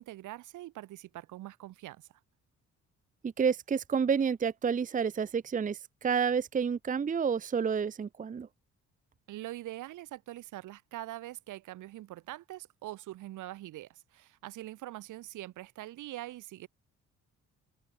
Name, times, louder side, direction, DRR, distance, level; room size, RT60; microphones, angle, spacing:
voice 1, 0.0-2.1 9.3-16.7, right 15 dB, 90° right, 3.5 m, -43 dB
voice 2, 3.2-8.5, right 6 dB, 25° right, 0.7 m, -29 dB
open air
cardioid pair, 90°, 30 cm